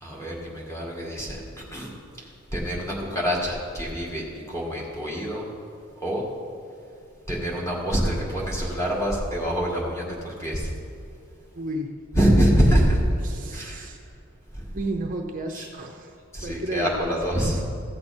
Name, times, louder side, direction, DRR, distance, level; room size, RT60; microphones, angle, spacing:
voice 1, 0.0-1.4 1.7-1.9 2.5-5.4 6.0-6.2 7.3-10.7 12.1-13.0 13.5-13.9 14.5-14.7 15.6-15.7 16.3-17.6, equal, 15° left, -4 dB, 2.0 m, -25 dB
voice 2, 11.5-12.0 13.2-14.0 14.7-17.6, right 1 dB, 40° right, 3 dB, 0.7 m, -33 dB
15.0 x 7.5 x 4.4 m, 2.4 s
head